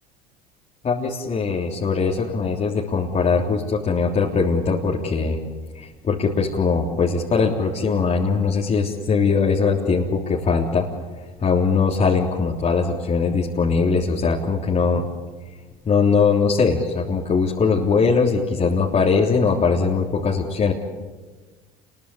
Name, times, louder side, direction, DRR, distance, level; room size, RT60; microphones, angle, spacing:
voice 1, 0.8-5.4 5.8-10.9 11.4-15.0 15.9-20.7, left 5 dB, 40° left, -2 dB, 3.4 m, -21 dB
28.0 x 21.5 x 8.6 m, 1.3 s
hypercardioid pair, 80°, 19 cm